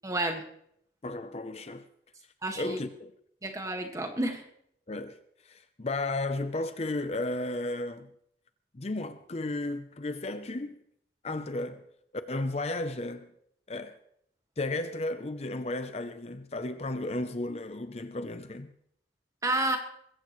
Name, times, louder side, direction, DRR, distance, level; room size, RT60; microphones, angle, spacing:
voice 1, 0.0-0.4 2.4-2.8 3.4-4.4 19.4-19.8, right 2 dB, 20° right, 1.8 m, -30 dB
voice 2, 1.0-1.9 2.6-3.1 4.9-8.1 8.7-10.8 11.2-11.8 12.3-13.3 13.7-14.0 14.6-18.7, left 2 dB, 35° left, 0.6 m, -34 dB
22.0 x 15.5 x 3.2 m
head